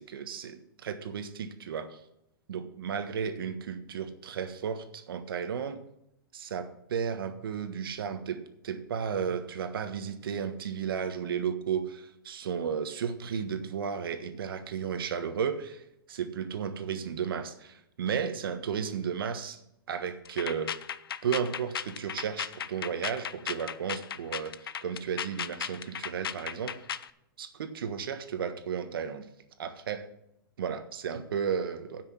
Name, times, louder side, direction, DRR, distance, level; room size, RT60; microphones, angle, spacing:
voice 1, 0.0-2.0 2.5-5.8 6.3-19.6 19.9-20.8 21.2-26.8 27.4-29.3 29.6-30.1 30.6-32.0, right 7 dB, 80° right, 9 dB, 1.3 m, -34 dB
sound 1, 20.2-27.1, left 8 dB, 90° left, 0.5 m, -36 dB
8.6 x 6.2 x 7.5 m, 0.79 s
hypercardioid pair, 130°, 12 cm